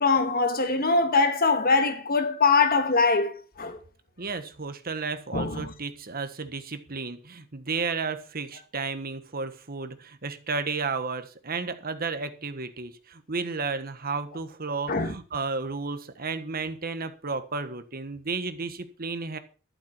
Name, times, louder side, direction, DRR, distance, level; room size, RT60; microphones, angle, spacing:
voice 1, 0.0-3.8 5.3-5.7 14.9-15.1, left 4 dB, 45° left, 1.6 m, -23 dB
voice 2, 4.2-19.4, right 4 dB, 45° right, 1.4 m, -33 dB
12.0 x 12.0 x 4.6 m
head